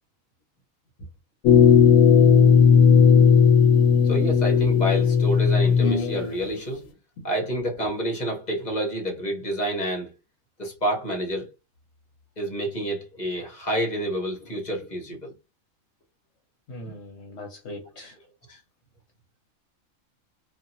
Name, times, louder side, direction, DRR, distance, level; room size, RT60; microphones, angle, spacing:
sound 1, 1.4-6.4, left 6 dB, 90° left, 1.0 m, -16 dB
voice 1, 4.0-6.9 7.2-10.1 10.6-11.5 12.4-15.3 18.5-18.6, right 1 dB, 35° left, 1.0 m, -28 dB
voice 2, 16.7-18.1, left 1 dB, 60° left, 1.0 m, -40 dB
2.8 x 2.5 x 2.6 m
omnidirectional pair, 1.4 m